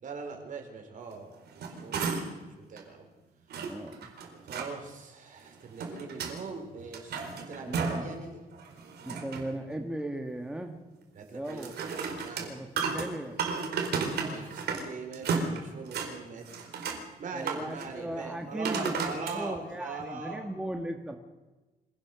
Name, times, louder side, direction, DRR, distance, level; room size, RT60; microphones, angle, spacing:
voice 1, 0.0-2.1 2.7-3.1 4.4-8.4 11.1-11.7 12.2-12.5 14.1-16.5 17.2-20.4, right 4 dB, 55° right, 4 dB, 4.8 m, -41 dB
sound 1, 1.3-2.5 2.8-2.9 3.5-4.7 5.5-6.4 6.8-8.1 8.5-9.5 11.5-14.9 15.1-16.1 16.5-17.0 17.4-17.9 18.6-19.4 20.0-20.1, right 5 dB, 85° right, 4.4 m, -33 dB
voice 2, 3.7-4.1 7.7-8.1 9.0-10.8 11.3-11.7 12.5-13.4 17.3-21.2, right 1 dB, 5° right, 4 dB, 1.5 m, -37 dB
25.5 x 17.5 x 6.9 m, 1.2 s
wide cardioid pair, 165°, 16 cm